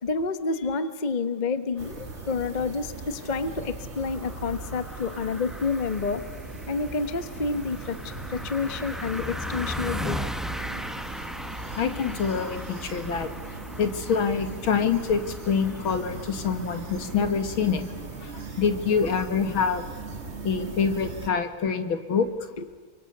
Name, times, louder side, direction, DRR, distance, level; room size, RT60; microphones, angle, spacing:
voice 1, 0.0-6.2 6.7-8.0 8.3-10.2 22.6-22.7, left 4 dB, 30° left, 11 dB, 1.0 m, -29 dB
sound 1, 1.8-20.4, equal, ahead, 0.6 m, -39 dB
sound 2, 1.8-21.3, right 3 dB, 30° right, 2.1 m, -39 dB
voice 2, 11.8-13.3 13.8-17.8 18.2-19.8 20.4-22.3, left 6 dB, 70° left, 8 dB, 2.6 m, -26 dB
30.0 x 24.5 x 6.7 m, 1.5 s
omnidirectional pair, 2.3 m